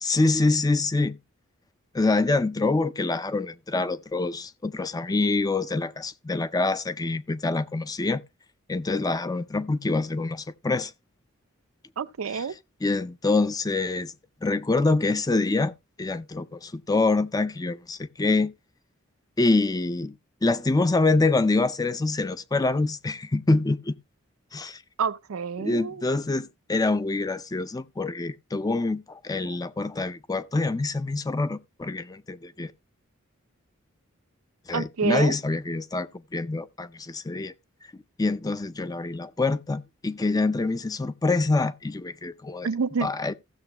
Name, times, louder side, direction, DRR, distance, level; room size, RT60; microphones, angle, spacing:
voice 1, 0.0-1.2 1.9-8.2 8.7-10.9 12.3-12.4 12.8-14.1 14.4-15.7 16.0-18.5 19.4-20.1 20.4-24.0 24.5-24.8 25.6-32.7 34.7-37.5 38.2-42.7 43.0-43.3, left 3 dB, 20° left, 0.4 m, -25 dB
voice 2, 12.0-12.5 25.0-26.0 34.7-35.4 42.6-43.1, right 6 dB, 80° right, 0.5 m, -28 dB
15.5 x 6.9 x 2.9 m
head